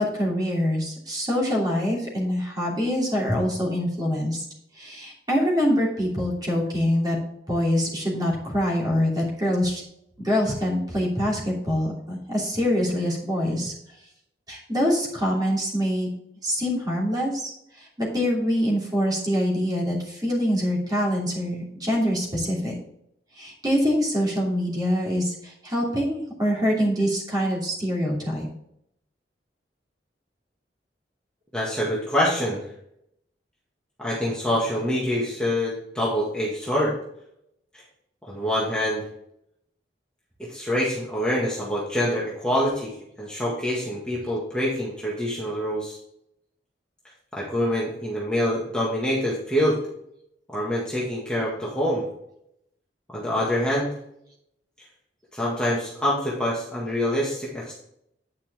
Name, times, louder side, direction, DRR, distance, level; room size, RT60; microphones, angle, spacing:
voice 1, 0.0-4.4 4.8-7.2 7.5-9.8 10.2-13.7 14.5-16.1 16.4-17.5 17.8-22.7 23.4-28.5, equal, 25° right, -4 dB, 2.9 m, -25 dB
voice 2, 31.5-32.6 34.0-36.9 38.3-39.0 40.4-42.9 43.2-46.0 47.3-49.8 50.5-52.1 53.1-53.9 55.3-57.7, equal, 5° left, -6 dB, 1.8 m, -25 dB
9.3 x 5.7 x 3.6 m, 0.75 s
head